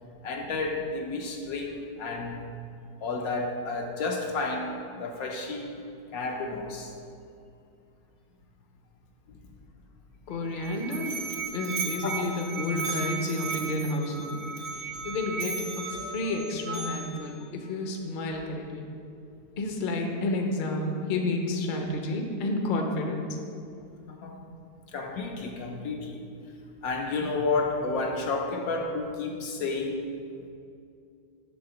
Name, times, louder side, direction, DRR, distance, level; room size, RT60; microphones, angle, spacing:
voice 1, 0.2-2.4 3.0-5.8 6.1-6.9 12.0-12.2 15.9-16.4 16.8-16.9 24.1-24.4 24.9-26.2 26.8-30.0, left 3 dB, 70° left, 2 dB, 1.0 m, -31 dB
voice 2, 10.3-11.2 11.5-14.4 14.7-18.9 19.6-23.2, left 2 dB, 45° left, 2 dB, 0.7 m, -30 dB
Musical instrument, 10.3-17.3, right 4 dB, 70° right, 1.2 m, -35 dB
7.6 x 3.5 x 6.0 m, 2.5 s
omnidirectional pair, 1.7 m